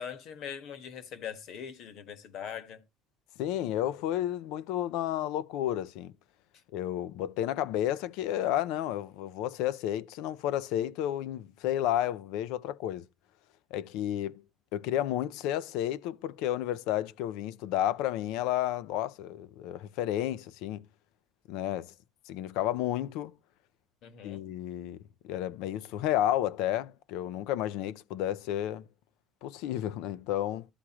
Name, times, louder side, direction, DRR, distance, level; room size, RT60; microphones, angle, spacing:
voice 1, 0.0-2.8 24.0-24.4, left 8 dB, 55° left, 1.4 m, -41 dB
voice 2, 3.4-6.1 6.7-13.1 13.7-14.4 14.7-20.8 21.5-21.9 22.3-23.3 24.2-25.0 25.2-28.8 29.4-30.7, left 12 dB, 85° left, 0.5 m, -31 dB
13.0 x 4.8 x 3.0 m
cardioid pair, 165°, 0 cm